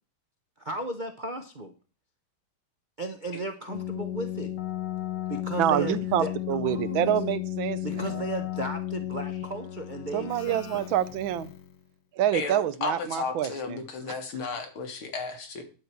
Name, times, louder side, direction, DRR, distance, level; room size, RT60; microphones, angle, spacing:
voice 1, 0.6-1.7 3.0-4.5 5.3-6.3 6.6-7.2 7.8-10.9, right 2 dB, 50° right, 5 dB, 0.5 m, -35 dB
Keyboard (musical), 3.7-11.8, left 13 dB, 60° left, 1.5 m, -34 dB
voice 2, 5.6-8.2 10.1-11.5 12.2-13.8 14.1-14.2, right 11 dB, 75° right, 15 dB, 1.4 m, -27 dB
voice 3, 12.3-15.6, left 4 dB, 85° left, 5 dB, 2.7 m, -33 dB
10.5 x 4.6 x 8.0 m, 0.36 s
omnidirectional pair, 2.3 m